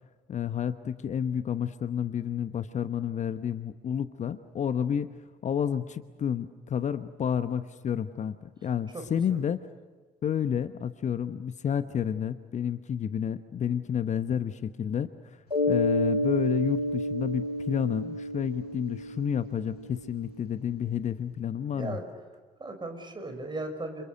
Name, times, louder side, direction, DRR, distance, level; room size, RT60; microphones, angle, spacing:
voice 1, 0.3-5.1 5.4-8.4 8.6-9.6 10.2-22.0, left 8 dB, 40° left, 12 dB, 1.0 m, -30 dB
voice 2, 8.9-9.4 21.7-22.1 22.6-24.0, right 2 dB, 25° right, 6 dB, 5.8 m, -37 dB
Mallet percussion, 15.5-19.9, left 1 dB, 90° left, 1.5 m, -29 dB
29.5 x 27.5 x 6.7 m, 1.4 s
figure-of-eight pair, 50°, 19 cm